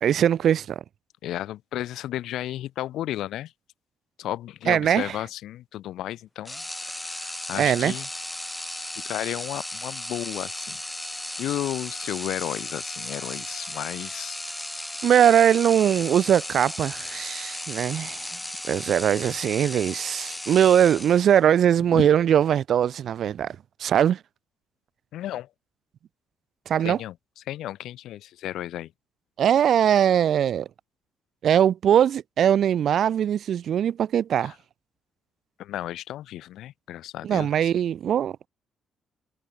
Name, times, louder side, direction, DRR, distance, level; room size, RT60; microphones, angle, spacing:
voice 1, 0.0-0.8 4.7-5.2 7.5-8.0 15.0-18.4 18.7-24.2 26.7-27.0 29.4-30.7 31.4-34.5 37.2-38.5, right 9 dB, 65° right, 0.4 m, -21 dB
voice 2, 1.2-3.5 4.2-6.6 6.9-8.1 9.0-10.8 11.4-14.4 21.9-22.0 25.1-25.5 26.8-27.1 27.5-28.9 34.4-34.5 35.6-37.7, left 13 dB, 80° left, 0.7 m, -33 dB
sound 1, 6.4-21.5, left 1 dB, 10° left, 1.0 m, -35 dB
cardioid pair, 90°, 0 cm